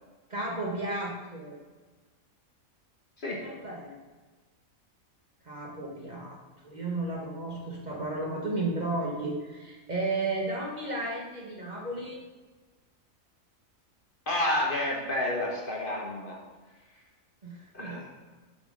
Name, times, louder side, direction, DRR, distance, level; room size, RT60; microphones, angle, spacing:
voice 1, 0.3-1.6 3.4-4.0 5.4-12.2 17.4-18.0, right 2 dB, 35° right, -2 dB, 1.3 m, -33 dB
voice 2, 14.3-16.4 17.7-18.1, left 1 dB, 45° left, -2 dB, 1.1 m, -30 dB
6.8 x 3.9 x 6.4 m, 1.3 s
omnidirectional pair, 1.4 m